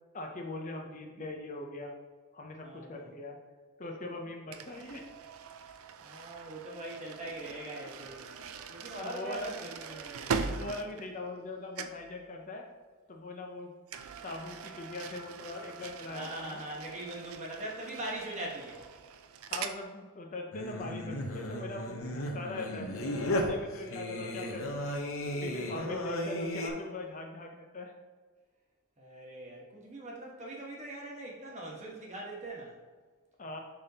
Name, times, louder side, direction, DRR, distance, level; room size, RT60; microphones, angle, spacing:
voice 1, 0.1-1.9 2.3-3.4 3.8-5.0 8.9-9.6 10.5-12.6 13.1-13.7 14.2-16.6 19.5-22.9 23.3-24.9 25.4-27.9 33.4-33.6, left 2 dB, 35° left, 2 dB, 0.6 m, -41 dB
voice 2, 2.6-3.1 6.0-8.2 8.7-10.5 16.1-18.8 29.0-32.8, right 1 dB, 30° right, -2 dB, 1.2 m, -42 dB
sound 1, 4.5-11.5 11.7-12.1 13.9-19.8, right 5 dB, 70° right, 0.4 m, -41 dB
Singing, 20.5-26.7, left 1 dB, 65° left, 0.9 m, -35 dB
10.5 x 3.5 x 2.8 m, 1.5 s
head